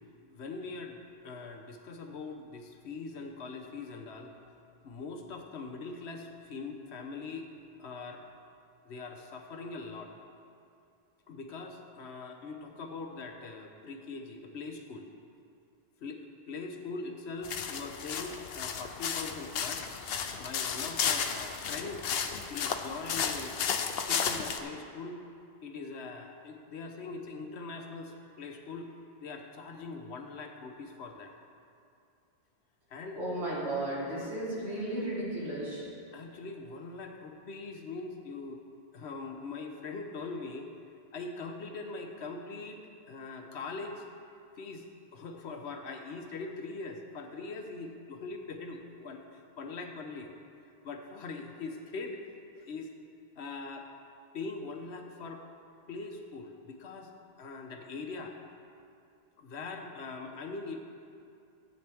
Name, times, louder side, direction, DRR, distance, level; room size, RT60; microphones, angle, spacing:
voice 1, 0.3-4.4 4.8-7.5 7.8-8.2 8.8-10.1 11.3-15.1 16.0-19.8 20.4-22.0 22.5-23.6 24.0-25.2 25.6-28.9 29.2-31.3 32.9-33.2 36.1-38.6 38.9-40.7 41.1-44.0 44.6-44.8 45.1-50.3 50.8-52.3 52.6-52.9 53.4-53.9 54.3-55.4 55.9-57.1 57.4-58.4 59.4-60.8, left 3 dB, 85° left, 4 dB, 1.2 m, -42 dB
sound 1, 17.4-24.6, left 7 dB, 70° left, 0.8 m, -33 dB
voice 2, 33.1-35.9, right 1 dB, 90° right, -8 dB, 3.3 m, -34 dB
14.0 x 8.4 x 3.5 m, 2.5 s
omnidirectional pair, 1.1 m